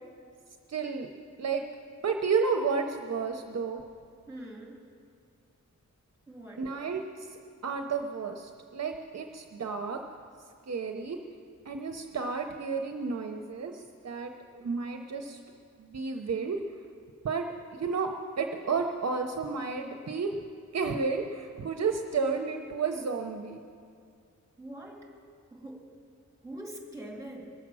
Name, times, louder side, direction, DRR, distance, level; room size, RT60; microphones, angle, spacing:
voice 1, 0.7-1.1 1.4-1.6 2.0-3.8 6.6-10.0 10.7-11.2 11.7-15.4 15.8-16.6 17.2-17.5 17.7-20.4 20.7-23.6, right 5 dB, 55° right, 4 dB, 0.7 m, -32 dB
voice 2, 4.3-4.8 6.3-6.6 24.6-25.1 25.5-25.8 26.4-27.5, right 1 dB, 10° right, -2 dB, 2.5 m, -43 dB
21.5 x 7.2 x 6.1 m, 2.2 s
wide cardioid pair, 150°, 31 cm